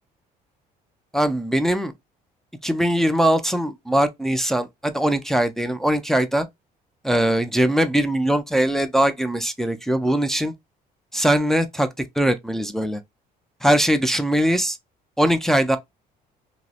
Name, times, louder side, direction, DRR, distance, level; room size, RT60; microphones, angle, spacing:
voice 1, 1.1-1.9 2.6-6.5 7.0-10.5 11.1-11.9 12.2-13.0 13.6-14.8 15.2-15.8, right 1 dB, ahead, 0.4 m, -21 dB
2.7 x 2.0 x 2.3 m
cardioid pair, 110°, 17 cm